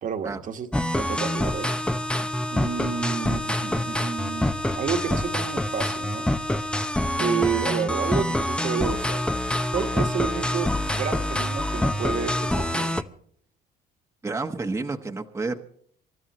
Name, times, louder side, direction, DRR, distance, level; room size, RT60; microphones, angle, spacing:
voice 1, 0.0-1.7 2.5-6.3 7.2-9.3 9.7-13.1, right 7 dB, 50° right, 5 dB, 1.6 m, -30 dB
sound 1, 0.7-13.0, left 1 dB, 5° left, 0.8 m, -26 dB
voice 2, 14.2-15.6, right 3 dB, 15° right, 3 dB, 1.2 m, -30 dB
27.5 x 13.0 x 3.1 m, 0.63 s
cardioid pair, 110°, 17 cm